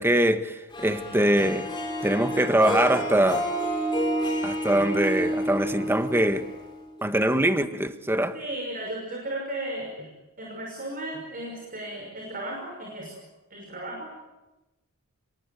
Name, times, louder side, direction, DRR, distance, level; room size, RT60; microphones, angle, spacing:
voice 1, 0.0-1.7 2.0-3.5 4.4-6.5 7.0-8.3, right 1 dB, 10° right, 1.5 m, -23 dB
Harp, 0.7-7.0, equal, 20° left, 7.1 m, -29 dB
voice 2, 8.3-10.1 10.4-13.2 13.5-14.1, right 1 dB, 40° right, 6.0 m, -35 dB
27.0 x 22.5 x 9.4 m
head